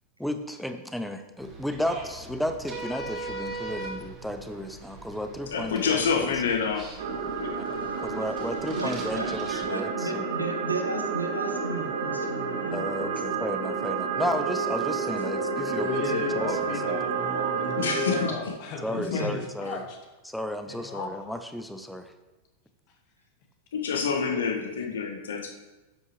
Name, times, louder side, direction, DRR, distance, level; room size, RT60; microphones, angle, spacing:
voice 1, 0.2-6.3 7.6-10.3 12.7-15.9 16.1-16.9 18.8-19.8 20.2-22.1, equal, ahead, 8 dB, 0.8 m, -33 dB
sound 1, 1.4-9.6, right 3 dB, 25° right, 2.2 m, -41 dB
voice 2, 5.5-6.8 7.4-7.5 17.8-18.3 18.9-19.5 23.7-25.5, left 6 dB, 65° left, 3 dB, 1.5 m, -27 dB
sound 2, 7.0-18.3, right 5 dB, 60° right, 1.1 m, -30 dB
voice 3, 8.7-9.3 9.7-13.3 19.2-19.3, right 2 dB, 85° right, 4 dB, 1.1 m, -34 dB
voice 4, 15.7-20.0 20.7-21.2, left 5 dB, 45° left, 2 dB, 1.8 m, -34 dB
11.0 x 8.1 x 3.2 m, 1.1 s
figure-of-eight pair, 90°, 0 cm